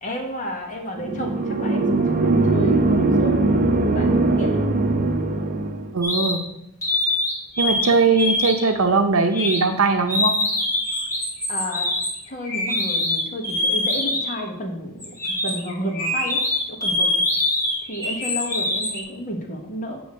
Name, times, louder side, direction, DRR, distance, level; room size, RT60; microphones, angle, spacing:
voice 1, 0.0-3.3 3.9-4.6 11.5-11.9 12.3-16.4 16.7-17.1 17.9-20.0, equal, 40° left, 1 dB, 1.4 m, -31 dB
sound 1, 1.0-5.9, right 2 dB, 45° right, 0.7 m, -20 dB
voice 2, 5.9-6.4 7.6-10.4, right 4 dB, 85° right, 6 dB, 0.7 m, -20 dB
sound 2, 6.0-6.4 6.8-7.9 8.1-8.7 9.3-9.6 10.1-14.4 15.0-19.0, left 1 dB, 15° left, 2.0 m, -24 dB
7.9 x 3.1 x 6.2 m, 0.79 s
head